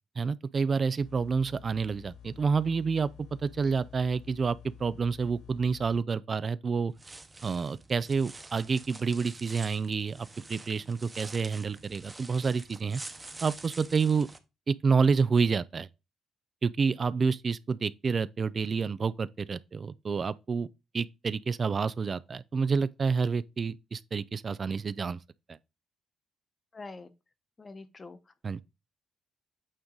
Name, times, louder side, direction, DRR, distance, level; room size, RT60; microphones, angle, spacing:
voice 1, 0.2-6.9 7.4-13.0 13.4-14.3 14.7-15.9 16.6-20.7 20.9-25.2 25.5-25.6 28.4-28.6, right 5 dB, 40° right, 0.3 m, -29 dB
sound 1, 1.0-6.0, left 9 dB, 85° left, 1.6 m, -51 dB
sound 2, 6.9-14.4, right 2 dB, 20° right, 0.9 m, -47 dB
voice 2, 26.7-27.1 27.6-28.3, left 3 dB, 30° left, 0.9 m, -45 dB
8.6 x 3.8 x 3.8 m
cardioid pair, 90°, 0 cm